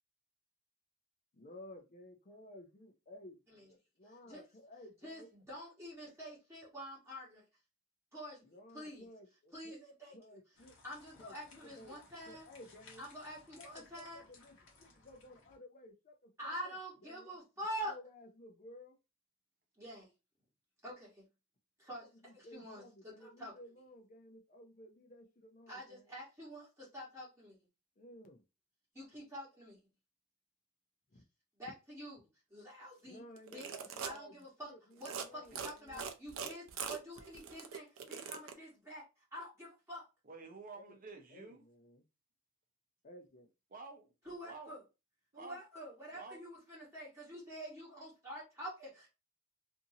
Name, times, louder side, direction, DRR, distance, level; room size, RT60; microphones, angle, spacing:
voice 1, 1.3-5.3 8.4-9.8 10.1-10.8 11.2-12.0 12.3-13.0 13.6-19.0 22.2-26.2 28.0-28.4 31.1-31.2 33.0-34.3 34.6-36.0 40.7-41.0 41.3-42.0 43.0-43.5, left 1 dB, 40° left, 0.5 m, -56 dB
voice 2, 5.0-7.4 8.1-8.4 8.7-9.1 9.5-10.2 10.8-12.4 13.0-14.2 16.4-17.9 19.8-20.1 20.8-21.2 21.8-23.5 25.7-27.6 28.9-29.8 31.6-32.2 32.5-33.2 33.5-33.7 34.0-34.7 35.0-39.0 39.3-40.0 44.2-44.8 45.3-49.1, equal, 15° right, 1.3 m, -47 dB
sound 1, 10.5-15.6, left 3 dB, 70° left, 0.9 m, -61 dB
sound 2, 33.4-34.2 34.9-35.3 35.6-38.5, right 6 dB, 90° right, 0.5 m, -42 dB
voice 3, 35.3-35.7 40.2-41.6 43.7-44.7 45.3-45.6 46.1-46.4, right 3 dB, 45° right, 0.7 m, -51 dB
2.6 x 2.6 x 2.7 m
head